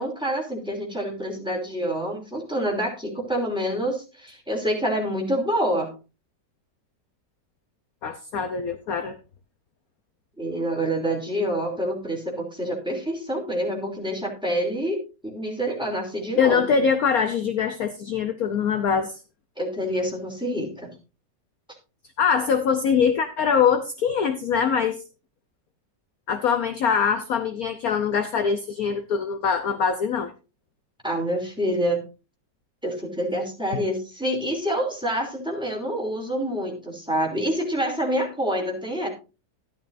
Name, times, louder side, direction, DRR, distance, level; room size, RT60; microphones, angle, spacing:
voice 1, 0.0-5.9 10.4-16.8 19.6-20.9 31.0-32.0 32.8-39.1, equal, ahead, 0 dB, 2.9 m, -27 dB
voice 2, 8.0-9.2 16.4-19.1 22.2-25.0 26.3-30.3, left 6 dB, 60° left, 8 dB, 1.1 m, -23 dB
12.5 x 11.5 x 2.6 m, 0.30 s
omnidirectional pair, 2.0 m